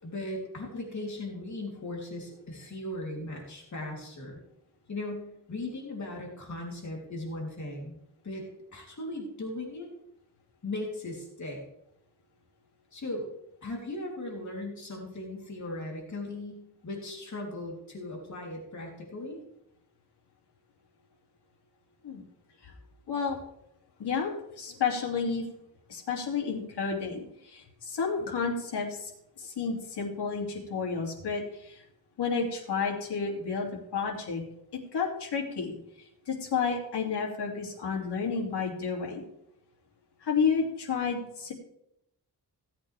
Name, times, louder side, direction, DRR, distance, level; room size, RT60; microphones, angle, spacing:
voice 1, 0.0-4.4 4.9-8.0 8.2-8.4 8.7-9.9 10.6-11.6 12.9-13.3 13.6-19.4, left 2 dB, 45° left, -1 dB, 3.3 m, -38 dB
voice 2, 23.1-23.4 24.0-25.4 25.9-29.1 29.4-31.8 32.2-34.4 34.9-35.8 36.3-39.2 40.2-41.5, left 5 dB, 85° left, 0 dB, 2.8 m, -31 dB
17.0 x 8.5 x 3.4 m, 0.78 s
wide cardioid pair, 125°, 39 cm